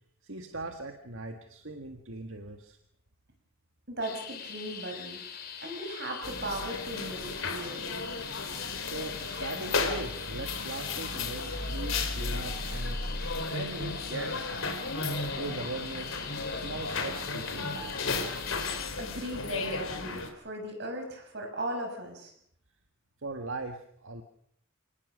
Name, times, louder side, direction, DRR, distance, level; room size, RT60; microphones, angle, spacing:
voice 1, 0.2-2.8 8.8-13.0 13.5-14.6 15.3-16.2 16.5-18.2 23.2-24.2, right 2 dB, 75° right, 5 dB, 1.7 m, -40 dB
voice 2, 3.9-5.2 5.6-7.8 19.0-22.3, right 1 dB, 55° right, 3 dB, 6.4 m, -37 dB
sound 1, 4.0-18.9, left 7 dB, 50° left, 3.0 m, -43 dB
sound 2, 6.2-20.3, left 3 dB, 80° left, 3.6 m, -34 dB
28.0 x 19.0 x 6.4 m, 0.69 s
head